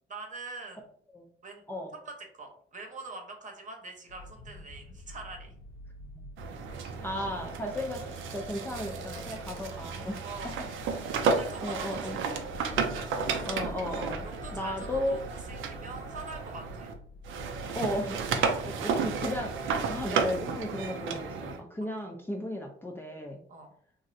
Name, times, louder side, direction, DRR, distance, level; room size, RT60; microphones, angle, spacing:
voice 1, 0.1-0.8 1.4-1.6 2.1-5.6 9.8-9.9 10.2-10.6 11.2-12.4 13.2-13.5 14.2-16.9 18.4-18.7 23.5-23.7, right 3 dB, 40° right, 2 dB, 0.9 m, -44 dB
sound 1, 4.1-20.6, left 1 dB, 90° left, 0.5 m, -47 dB
sound 2, 6.4-16.9 17.2-21.6, right 5 dB, 80° right, 0.5 m, -33 dB
voice 2, 7.0-8.0 8.3-10.5 11.6-12.2 13.4-14.3 14.5-15.2 17.7-18.2 18.6-23.4, left 1 dB, 10° left, 1 dB, 0.4 m, -35 dB
3.1 x 2.5 x 2.6 m, 0.62 s
cardioid pair, 90°, 20 cm